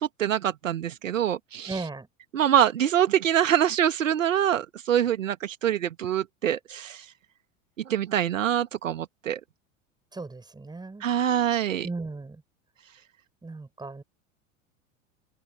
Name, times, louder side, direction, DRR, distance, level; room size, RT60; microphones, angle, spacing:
voice 1, 0.0-1.8 2.3-7.1 7.9-9.4 11.0-11.9, right 10 dB, 70° right, 1.8 m, -25 dB
voice 2, 1.7-2.1 10.1-11.0 11.8-12.4 13.4-14.0, right 3 dB, 10° right, 6.5 m, -36 dB
open air
figure-of-eight pair, 80°, 41 cm